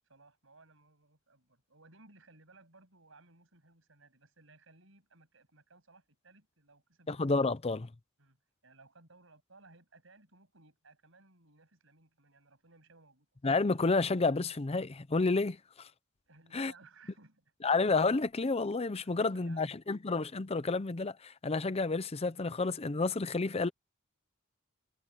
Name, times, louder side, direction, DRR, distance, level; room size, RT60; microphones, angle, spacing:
voice 1, 0.1-7.3 8.2-8.4 8.6-13.3 16.3-17.5 19.0-20.0, right 3 dB, 70° right, 7.6 m, -61 dB
voice 2, 7.1-7.9 13.4-15.9 16.5-16.7 17.6-23.7, left 3 dB, 30° left, 0.6 m, -30 dB
head